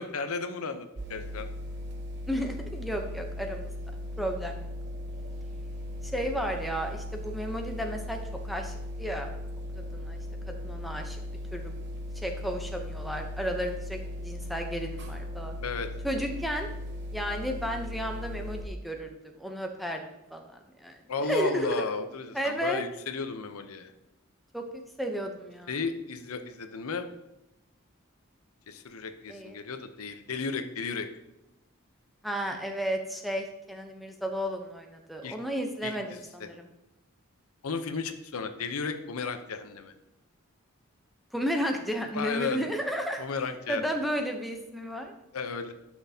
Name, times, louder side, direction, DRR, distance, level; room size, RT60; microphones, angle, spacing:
voice 1, 0.0-1.5 15.6-15.9 21.1-23.9 25.7-27.1 28.7-31.1 35.2-35.3 35.8-36.5 37.6-39.9 42.1-42.7 43.2-44.0 45.3-45.7, left 4 dB, 80° left, 8 dB, 0.7 m, -34 dB
sound 1, 1.0-18.6, left 1 dB, 50° right, 1.0 m, -38 dB
voice 2, 2.3-3.7 4.2-4.7 6.0-8.2 8.4-9.3 9.7-10.2 10.5-11.2 11.5-11.7 12.2-15.6 16.0-16.7 17.1-19.1 19.4-21.8 22.3-22.8 24.5-25.7 29.3-29.6 32.2-36.7 41.3-43.2 43.7-45.1, equal, ahead, 3 dB, 0.7 m, -33 dB
11.5 x 6.1 x 2.8 m, 0.91 s
head